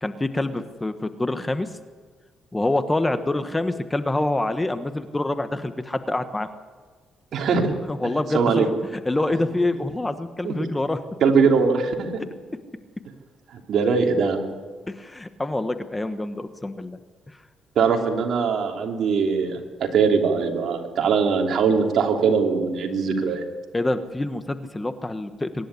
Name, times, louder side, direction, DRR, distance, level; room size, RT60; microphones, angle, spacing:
voice 1, 0.0-1.7 2.5-6.5 7.9-8.7 9.0-11.0 14.9-17.0 23.7-25.7, left 2 dB, 15° left, 10 dB, 1.2 m, -26 dB
voice 2, 7.3-7.7 8.3-8.7 10.4-10.5 11.2-12.2 13.5-14.4 17.7-23.4, right 5 dB, 65° right, 2 dB, 3.2 m, -21 dB
24.0 x 11.5 x 9.9 m, 1.4 s
cardioid pair, 90°, 0 cm